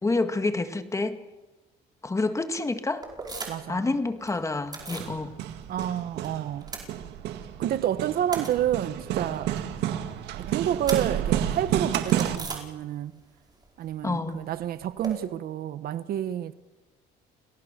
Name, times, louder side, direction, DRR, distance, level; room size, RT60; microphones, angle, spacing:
voice 1, 0.0-1.2 2.0-3.1 3.7-5.3 14.0-14.5, left 3 dB, 15° left, 1.8 m, -28 dB
sound 1, 3.0-3.8 4.0-5.1 5.5-6.3 6.5-7.5 7.9-13.2 13.5-15.1, right 3 dB, 25° right, 4.8 m, -40 dB
voice 2, 3.5-3.9 5.7-6.7 7.6-9.5 10.4-13.2 13.8-16.5, right 11 dB, 65° right, 1.1 m, -29 dB
Hammer, 4.8-12.4, right 11 dB, 85° right, 1.8 m, -30 dB
29.5 x 18.0 x 6.8 m
cardioid pair, 110°, 17 cm